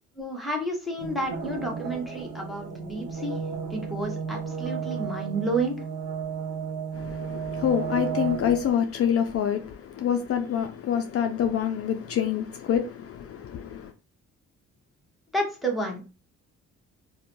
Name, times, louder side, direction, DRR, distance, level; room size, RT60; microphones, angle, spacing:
voice 1, 0.2-3.4 3.7-5.8 15.3-16.1, right 1 dB, ahead, 0.9 m, -30 dB
sound 1, 1.0-8.7, right 6 dB, 80° right, 0.6 m, -33 dB
voice 2, 6.9-13.9, left 8 dB, 50° left, 0.4 m, -26 dB
2.6 x 2.1 x 2.9 m
cardioid pair, 90°, 30 cm